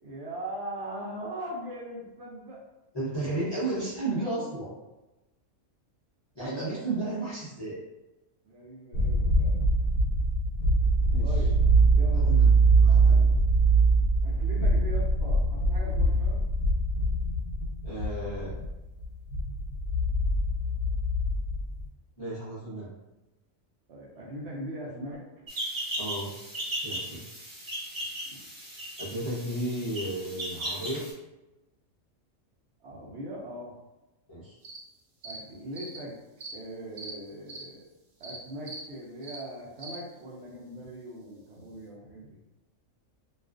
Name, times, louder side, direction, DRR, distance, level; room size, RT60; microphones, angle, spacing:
voice 1, 0.0-2.6 3.0-3.1 8.4-9.7 11.2-11.6 11.9-13.4 14.2-16.5 23.9-25.3 28.3-28.4 32.8-33.7 35.2-36.2 36.5-37.9 38.2-42.4, right 1 dB, 65° right, -4 dB, 0.8 m, -40 dB
voice 2, 2.9-4.7 6.4-7.8 11.1-11.3 12.1-12.5 12.8-13.2 17.8-18.5 22.2-22.9 26.0-26.3 26.8-27.2 29.0-31.0 34.3-34.6, right 2 dB, 30° left, -9 dB, 0.4 m, -33 dB
sound 1, 8.9-21.9, right 2 dB, 90° left, 1.0 m, -23 dB
sound 2, 25.5-31.1, right 1 dB, 45° right, 1.1 m, -36 dB
sound 3, 34.6-34.8 35.2-35.4 35.7-36.0 36.4-36.5 37.0-37.1 37.5-37.6 38.2-38.4 38.6-38.8 39.2-39.4 39.8-40.0, right 3 dB, 90° right, 0.3 m, -41 dB
2.3 x 2.3 x 2.4 m, 1.0 s
omnidirectional pair, 1.4 m